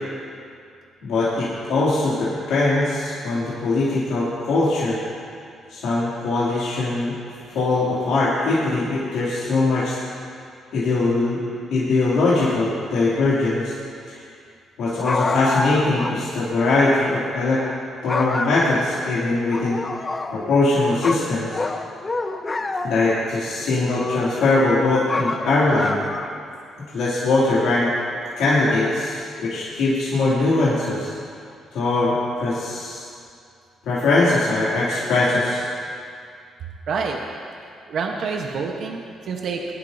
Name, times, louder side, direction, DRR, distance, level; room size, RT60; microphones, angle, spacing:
voice 1, 1.0-5.0 5.7-7.2 7.5-10.0 10.7-11.4 11.7-13.7 14.1-14.2 14.8-17.6 18.0-19.8 20.3-21.6 22.8-26.0 26.9-27.9 28.4-31.1 31.7-33.1 33.9-35.7, left 2 dB, 85° left, -9 dB, 2.6 m, -21 dB
sound 1, 15.0-16.2 16.5-16.6 17.5-17.8 18.1-19.1 19.5-20.7 21.0-23.2 23.8-24.6 25.1-26.4, left 3 dB, 25° left, 0.8 m, -28 dB
voice 2, 36.9-37.2 37.9-39.7, right 5 dB, 65° right, 1 dB, 1.0 m, -27 dB
20.5 x 10.5 x 2.7 m, 2.3 s
cardioid pair, 90°, 0 cm